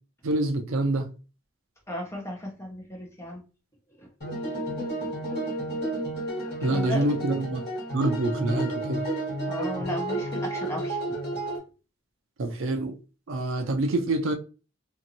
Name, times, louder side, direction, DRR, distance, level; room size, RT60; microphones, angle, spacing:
voice 1, 0.2-1.1 6.6-7.6 7.9-9.0 12.4-12.9 13.3-14.3, right 2 dB, 65° right, 0.5 m, -26 dB
voice 2, 1.9-3.4 4.0-4.1 6.7-7.1 9.5-11.0, equal, 15° left, 0.7 m, -35 dB
sound 1, 4.2-11.6, right 1 dB, 45° left, 1.4 m, -31 dB
2.8 x 2.6 x 2.7 m
head